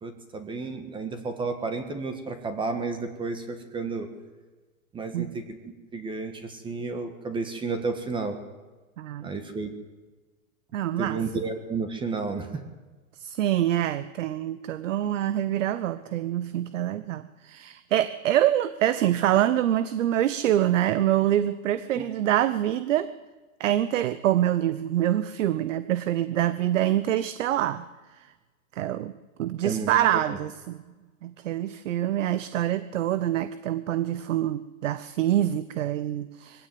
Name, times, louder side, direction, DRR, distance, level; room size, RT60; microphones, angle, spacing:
voice 1, 0.0-4.1 4.9-5.4 5.9-8.4 9.2-9.7 11.0-12.6 21.9-22.0 29.6-29.9 30.3-30.4, right 4 dB, 10° right, 8 dB, 1.6 m, -31 dB
voice 2, 9.0-9.3 10.7-11.2 13.2-23.1 23.6-27.9 28.2-28.3 28.7-29.1 29.4-30.8 31.2-36.7, right 12 dB, 65° right, 14 dB, 1.1 m, -25 dB
22.0 x 16.5 x 9.4 m, 1.3 s
hypercardioid pair, 155°, 41 cm